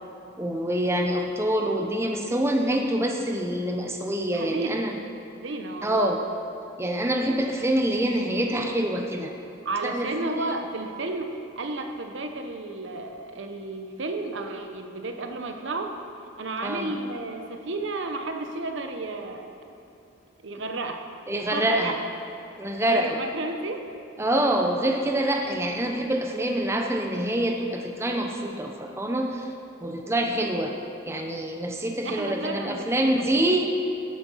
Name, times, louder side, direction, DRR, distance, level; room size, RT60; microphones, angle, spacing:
voice 1, 0.4-4.9 5.8-6.2 6.8-9.3 9.8-10.1 10.4-10.5 16.6-16.9 21.3-22.0 22.6-23.1 24.2-29.5 29.8-30.7 31.1-33.7, right 1 dB, 15° right, 2 dB, 0.8 m, -26 dB
voice 2, 4.3-4.8 5.3-6.1 9.6-16.0 16.4-19.5 20.4-21.0 21.5-21.9 22.8-23.9 32.0-33.6, right 2 dB, 65° right, 5 dB, 1.0 m, -32 dB
13.0 x 8.7 x 5.6 m, 2.8 s
head